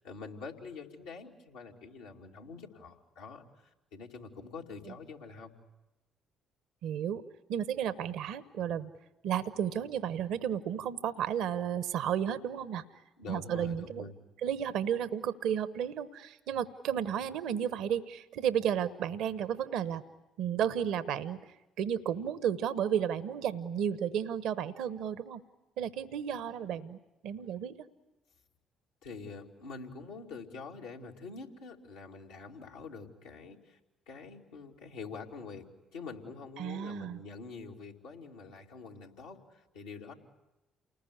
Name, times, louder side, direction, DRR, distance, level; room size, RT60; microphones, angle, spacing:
voice 1, 0.0-5.6 13.2-14.1 29.0-33.8 34.1-40.1, left 4 dB, 80° left, -2 dB, 2.6 m, -46 dB
voice 2, 6.8-7.2 7.5-8.9 9.2-12.8 13.3-14.0 14.4-20.0 20.4-25.4 25.8-27.0 27.2-27.9 36.6-37.2, right 9 dB, 70° right, 14 dB, 0.9 m, -33 dB
29.0 x 20.0 x 9.9 m, 1.0 s
hypercardioid pair, 50°, 0 cm